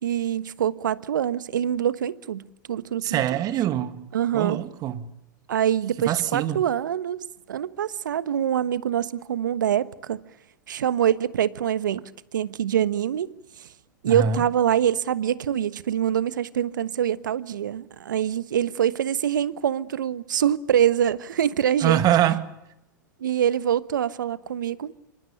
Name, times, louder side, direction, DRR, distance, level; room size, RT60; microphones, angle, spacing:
voice 1, 0.0-3.2 4.1-4.6 5.5-10.2 10.7-12.0 12.3-13.3 13.6-13.7 14.0-22.0 23.2-24.9, right 10 dB, 75° right, 1.3 m, -25 dB
voice 2, 3.0-4.1 4.3-5.1 6.1-6.6 14.1-14.4 21.8-22.5, right 10 dB, 35° right, 2.2 m, -24 dB
27.5 x 24.5 x 6.8 m
hypercardioid pair, 100°, 10 cm